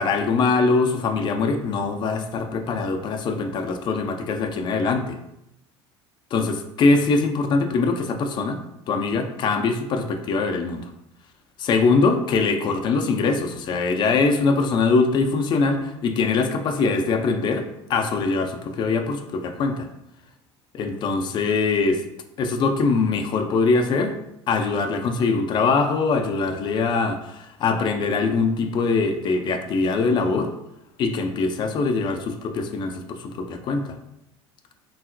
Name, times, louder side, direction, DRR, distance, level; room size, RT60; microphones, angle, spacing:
voice 1, 0.0-5.2 6.3-8.6 8.9-10.9 11.6-19.9 20.7-22.0 22.4-24.1 24.5-30.5 31.0-34.0, left 4 dB, 30° left, 6 dB, 0.4 m, -22 dB
3.8 x 2.0 x 2.5 m, 0.85 s
figure-of-eight pair, 65°, 15 cm